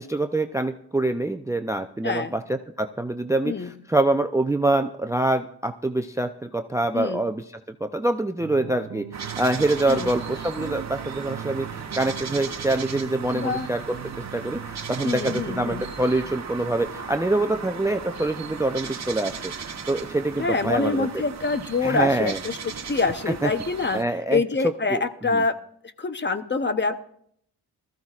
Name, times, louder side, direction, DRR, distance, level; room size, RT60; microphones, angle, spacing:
voice 1, 0.0-7.4 7.8-14.0 14.3-19.5 19.9-21.1 21.8-22.4 23.3-23.5 23.9-25.0 25.3-25.4, right 2 dB, 10° right, 8 dB, 0.5 m, -25 dB
sound 1, 8.4-15.9, right 12 dB, 65° right, 0.6 m, -40 dB
sound 2, 9.1-24.0, right 6 dB, 40° right, 1.1 m, -37 dB
sound 3, 9.9-21.1, right 1 dB, 45° left, 4.3 m, -50 dB
voice 2, 13.3-13.7 15.0-15.8 20.4-24.0 24.3-25.6 26.0-27.0, left 4 dB, 30° left, 10 dB, 0.8 m, -25 dB
20.0 x 14.0 x 2.4 m, 0.66 s
cardioid pair, 95°, 39 cm